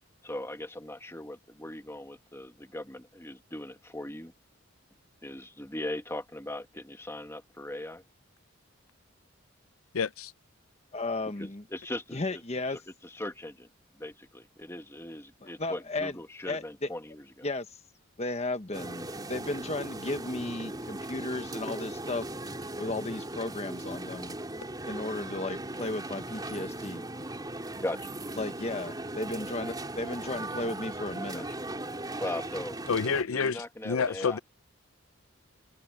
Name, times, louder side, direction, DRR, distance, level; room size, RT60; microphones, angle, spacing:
voice 1, 0.2-4.3 5.2-8.0 11.4-12.4 12.7-13.7 13.9-17.5 27.8-28.2 31.3-31.5 32.2-32.8 33.3-34.4, left 1 dB, 10° left, 1.7 m, -39 dB
voice 2, 9.9-10.3 32.9-34.4, left 5 dB, 80° left, 0.6 m, -29 dB
voice 3, 10.9-11.6 12.1-12.8 15.6-16.1 16.5-16.9 17.4-17.8 18.2-22.3 22.8-24.3 24.9-27.0 28.4-31.4, left 2 dB, 30° left, 1.2 m, -34 dB
sound 1, 18.7-33.2, right 1 dB, 20° right, 4.1 m, -38 dB
head